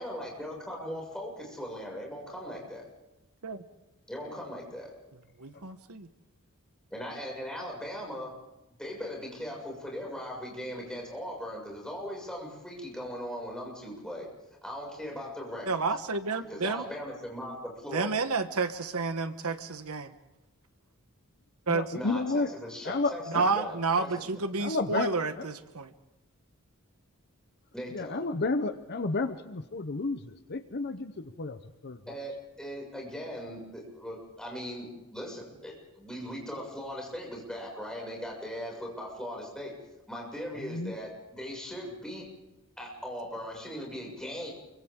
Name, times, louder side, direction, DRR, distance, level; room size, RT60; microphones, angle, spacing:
voice 1, 0.0-2.8 4.1-4.9 6.9-8.3 8.8-14.3 14.6-15.7 16.5-18.1 21.9-24.3 27.7-28.2 32.1-39.7 40.1-42.3 42.8-44.5, equal, 5° left, -1 dB, 6.5 m, -39 dB
voice 2, 5.4-6.1 15.7-16.8 17.9-20.1 21.7-21.9 23.3-25.9, right 4 dB, 80° right, 10 dB, 1.2 m, -30 dB
voice 3, 21.7-22.5 22.8-23.4 24.6-25.1 27.9-32.0 40.6-41.0, left 3 dB, 50° left, 9 dB, 0.9 m, -31 dB
29.0 x 24.0 x 3.8 m, 0.96 s
head